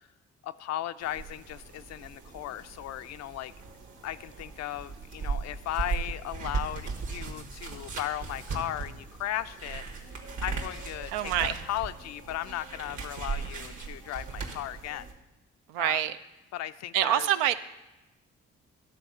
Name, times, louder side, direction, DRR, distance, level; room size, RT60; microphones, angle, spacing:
voice 1, 0.4-3.5 4.0-9.8 10.2-15.1 15.8-16.0 16.5-17.3, left 13 dB, 55° left, 13 dB, 0.5 m, -36 dB
sound 1, 1.0-15.1, right 4 dB, 65° right, 1.5 m, -38 dB
voice 2, 11.1-11.6 15.7-16.2 16.9-17.6, right 12 dB, 80° right, 12 dB, 0.5 m, -26 dB
11.5 x 4.2 x 6.5 m, 0.99 s
hypercardioid pair, 50°, 32 cm